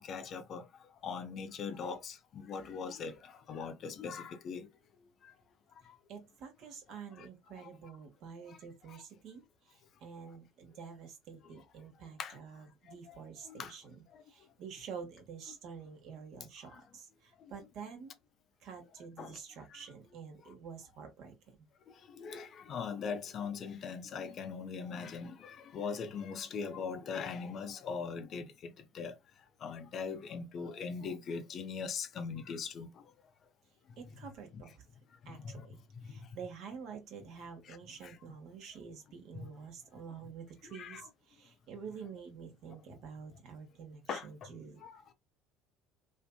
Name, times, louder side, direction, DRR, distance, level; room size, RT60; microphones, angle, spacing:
voice 1, 0.0-4.7 5.2-5.3 5.7-6.0 7.2-7.3 7.6-7.7 8.5-8.6 8.9-9.0 12.2-12.4 12.9-13.2 13.4-13.8 14.1-14.2 16.7-16.8 17.4-17.5 19.2-19.4 21.9-29.2 29.6-33.1 34.5-34.6 35.2-35.7 35.9-36.4 37.7-37.8 38.0-38.2 40.7-41.1 44.1-44.5 44.8-45.1, left 5 dB, 45° left, 0.4 m, -41 dB
voice 2, 6.1-18.1 18.6-21.7 34.0-34.7 35.3-35.8 36.0-44.8, right 6 dB, 55° right, 0.8 m, -48 dB
2.5 x 2.5 x 2.2 m
figure-of-eight pair, 60°, 0 cm